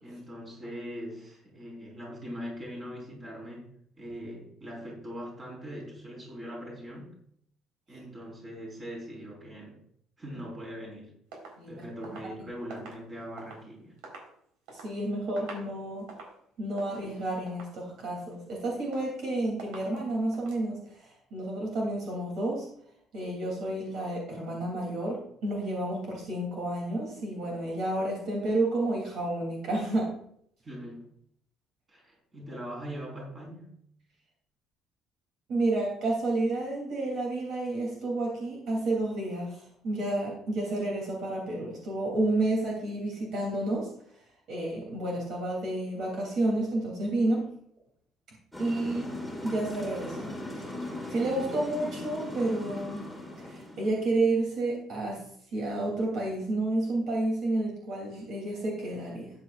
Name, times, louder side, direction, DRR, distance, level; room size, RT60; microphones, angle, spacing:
voice 1, 0.0-3.7 3.9-7.2 7.9-9.8 10.2-11.1 11.7-13.9 30.6-31.1 31.9-33.7, equal, 20° right, -2 dB, 4.7 m, -41 dB
sound 1, 11.3-13.7 14.0-14.9 15.3-15.7 16.0-16.4 16.8-17.1 17.5-17.8 18.2-18.6 18.9-19.3 19.6-20.0 20.3-20.6, right 3 dB, 90° right, 4.3 m, -46 dB
voice 2, 14.7-16.1 16.6-22.7 23.1-30.1 35.5-43.9 44.5-47.5 48.6-49.1 49.4-50.6 51.1-53.1 53.4-55.3 55.5-59.3, right 2 dB, 50° right, -2 dB, 3.1 m, -30 dB
sound 2, 48.5-54.1, left 1 dB, 5° right, 2.1 m, -39 dB
14.0 x 9.7 x 2.5 m, 0.67 s
cardioid pair, 170°, 0 cm